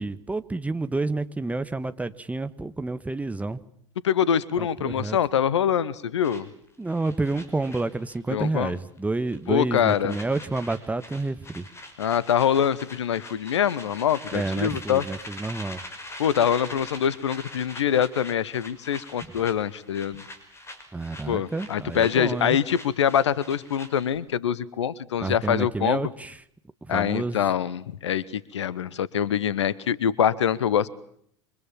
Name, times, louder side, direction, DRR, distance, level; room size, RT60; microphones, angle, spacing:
voice 1, 0.0-3.6 4.6-5.2 6.8-11.6 14.3-15.8 20.9-22.6 25.2-26.4 26.8-27.5, right 2 dB, 10° right, 11 dB, 1.3 m, -29 dB
voice 2, 4.0-6.5 8.3-8.7 9.5-10.2 12.0-15.0 16.2-20.2 21.3-26.0 26.9-30.9, left 9 dB, 70° left, 21 dB, 1.1 m, -24 dB
sound 1, 6.2-8.5 8.7-9.0 9.3-24.2, left 2 dB, 15° left, 5.7 m, -43 dB
28.0 x 25.0 x 7.4 m, 0.68 s
figure-of-eight pair, 75°, 15 cm